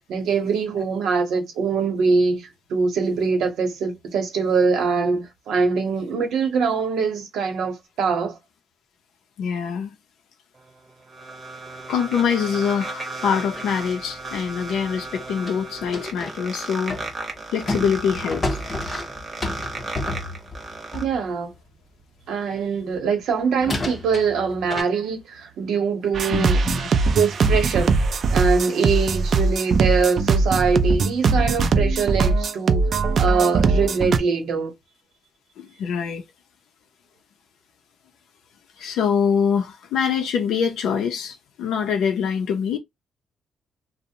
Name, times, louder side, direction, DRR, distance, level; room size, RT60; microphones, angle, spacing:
voice 1, 0.1-8.4 20.9-21.5 22.3-26.6 27.1-28.0 28.3-32.8 33.2-34.7, right 5 dB, 80° right, 0.8 m, -23 dB
voice 2, 9.4-9.9 11.9-17.0 17.5-18.4 26.3-26.9 35.6-36.2 38.8-42.8, left 7 dB, 85° left, 0.5 m, -24 dB
sound 1, 10.6-21.0, right 3 dB, 25° right, 0.7 m, -35 dB
sound 2, 13.5-16.4 16.9-21.3 23.0-23.1 23.6-24.8, left 2 dB, 25° left, 0.6 m, -31 dB
sound 3, 26.1-34.2, right 4 dB, 50° right, 0.3 m, -20 dB
2.5 x 2.0 x 2.7 m
cardioid pair, 140°, 0 cm